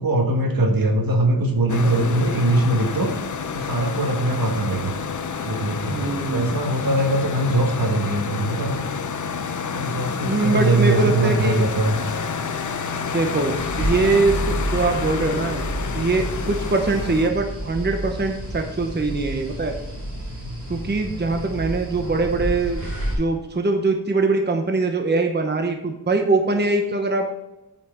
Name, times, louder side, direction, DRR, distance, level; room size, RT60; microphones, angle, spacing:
voice 1, 0.0-3.1 3.5-5.0 5.4-6.0 6.3-8.8 9.7-12.0 20.4-20.6, right 2 dB, 70° right, 3 dB, 1.5 m, -21 dB
voice 2, 1.3-2.5 5.9-6.5 10.2-11.6 13.1-15.6 15.9-19.7 20.7-22.8 23.2-27.5, right 3 dB, 30° right, 4 dB, 0.9 m, -23 dB
sound 1, 1.7-17.3, left 5 dB, 55° left, 0.7 m, -29 dB
sound 2, 13.6-23.1, right 1 dB, 55° right, 2.9 m, -30 dB
9.0 x 5.9 x 4.4 m, 0.96 s
wide cardioid pair, 120°, 36 cm